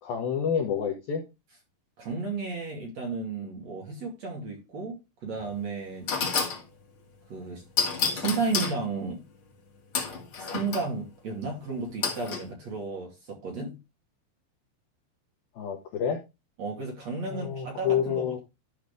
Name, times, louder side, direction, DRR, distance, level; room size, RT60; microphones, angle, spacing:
voice 1, 0.0-1.2 15.6-16.2 17.3-18.4, left 8 dB, 70° left, 2.3 m, -28 dB
voice 2, 2.0-6.1 7.3-7.6 8.1-9.2 10.4-13.8 16.6-18.4, right 4 dB, 40° right, 3.2 m, -33 dB
sound 1, 5.4-5.5 6.1-6.6 7.8-8.8 9.9-10.9 12.0-12.4, left 5 dB, 50° left, 1.6 m, -29 dB
12.5 x 4.9 x 3.5 m
omnidirectional pair, 5.5 m